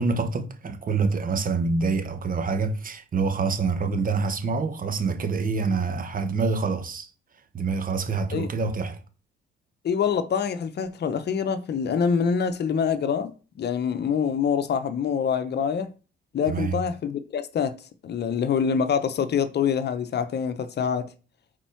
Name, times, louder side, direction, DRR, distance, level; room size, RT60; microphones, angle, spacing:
voice 1, 0.0-7.1 7.5-9.0 16.5-16.8, right 4 dB, 45° right, 1.4 m, -26 dB
voice 2, 9.8-13.3 13.6-15.9 16.3-17.7 18.0-21.1, left 7 dB, 55° left, 1.0 m, -25 dB
8.9 x 4.6 x 4.6 m
cardioid pair, 90°, 20 cm